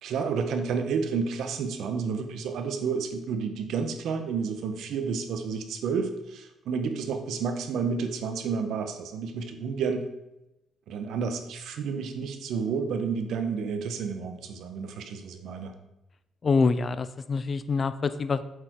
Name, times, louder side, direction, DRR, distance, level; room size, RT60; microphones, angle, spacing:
voice 1, 0.0-10.1 10.9-15.7, right 5 dB, 75° right, 7 dB, 1.2 m, -30 dB
voice 2, 16.4-18.4, left 4 dB, 30° left, 13 dB, 0.5 m, -25 dB
8.6 x 6.8 x 4.7 m, 0.92 s
cardioid pair, 140°, 0 cm